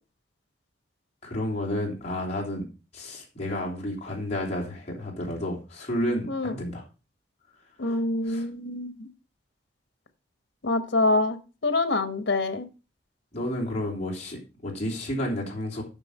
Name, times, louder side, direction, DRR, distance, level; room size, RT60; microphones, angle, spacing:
voice 1, 1.2-2.6 2.9-6.8 7.9-8.0 8.2-8.5 13.3-15.8, left 1 dB, 40° left, -2 dB, 3.2 m, -31 dB
voice 2, 7.8-9.1 10.6-11.4 11.6-12.6, left 2 dB, 90° left, 11 dB, 1.1 m, -25 dB
9.7 x 5.9 x 5.3 m, 0.32 s
head